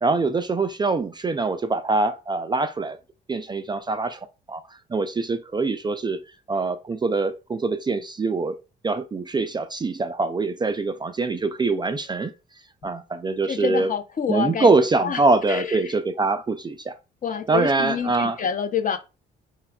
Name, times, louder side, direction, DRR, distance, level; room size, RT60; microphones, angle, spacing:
voice 1, 0.0-3.0 3.3-6.2 6.5-8.6 8.8-12.3 12.8-13.9 14.3-16.9 17.5-18.4, right 3 dB, 20° right, 0.3 m, -24 dB
voice 2, 13.5-14.7 15.0-15.2 15.5-15.9 17.2-19.0, left 7 dB, 40° left, 0.6 m, -27 dB
4.8 x 2.2 x 2.2 m
cardioid pair, 90°, 20 cm